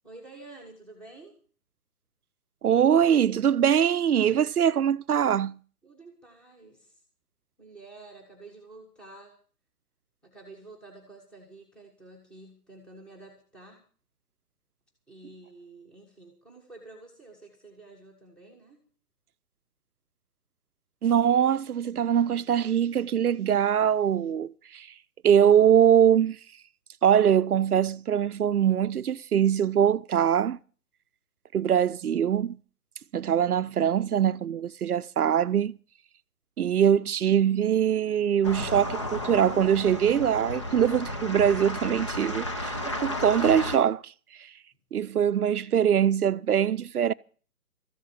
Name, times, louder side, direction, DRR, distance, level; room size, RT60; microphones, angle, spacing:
voice 1, 0.0-1.3 5.8-7.0 7.6-9.4 10.2-13.8 15.1-18.8, right 2 dB, ahead, 1.4 m, -49 dB
voice 2, 2.6-5.6 21.0-24.9 25.2-26.4 27.0-30.6 31.5-32.6 33.1-35.7 36.6-44.1 44.9-47.1, right 9 dB, 70° right, 0.7 m, -23 dB
sound 1, 38.4-43.8, left 1 dB, 20° left, 0.7 m, -33 dB
14.0 x 7.4 x 9.0 m
hypercardioid pair, 160°, 47 cm